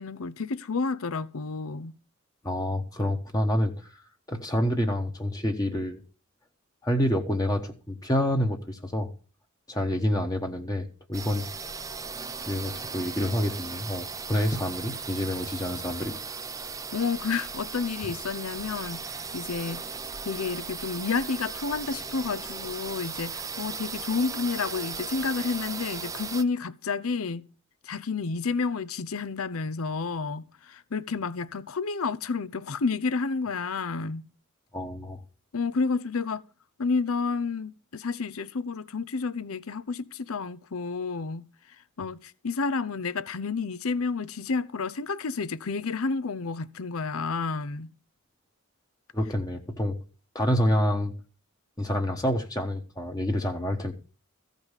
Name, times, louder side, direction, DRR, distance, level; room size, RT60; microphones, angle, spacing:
voice 1, 0.0-1.9 16.9-20.0 20.2-27.5 27.8-34.3 35.5-36.4 36.8-47.9, left 4 dB, 85° left, 0.7 m, -30 dB
voice 2, 2.4-3.9 4.3-6.0 6.8-9.1 9.7-11.5 12.5-16.1 34.7-35.2 49.1-50.0 50.3-51.1 51.8-53.9, left 1 dB, 15° left, 1.1 m, -27 dB
sound 1, 11.1-26.4, right 5 dB, 15° right, 0.5 m, -37 dB
15.0 x 5.3 x 8.1 m
head